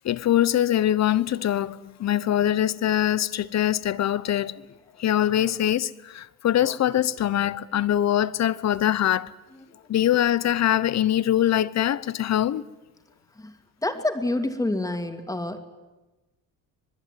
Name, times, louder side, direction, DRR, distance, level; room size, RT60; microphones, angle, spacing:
voice 1, 0.0-4.6 5.0-9.3 9.9-12.7, left 11 dB, 50° left, 0.9 m, -23 dB
voice 2, 13.8-15.6, left 2 dB, 10° left, 2.5 m, -27 dB
26.5 x 20.0 x 9.2 m
cardioid pair, 125°, 34 cm